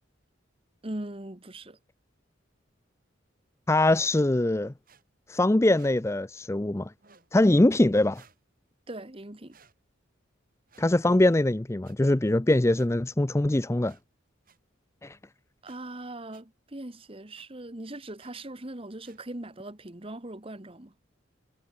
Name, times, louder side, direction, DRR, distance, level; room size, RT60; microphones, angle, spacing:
voice 1, 0.8-1.8 8.9-9.6 15.6-20.9, right 1 dB, 30° right, 1.4 m, -40 dB
voice 2, 3.7-4.7 5.3-6.9 7.3-8.2 10.8-13.9 15.0-15.2, left 1 dB, 15° left, 0.5 m, -22 dB
sound 1, 4.8-5.0 5.7-5.9 7.0-7.3 8.1-8.4 9.5-9.7 10.7-10.9 11.8-11.9 12.7-12.9 13.8-14.0 14.4-14.6 15.6-15.8 16.3-16.4 17.3-17.5 18.2-18.3 19.0-19.2, right 5 dB, 45° right, 7.8 m, -59 dB
head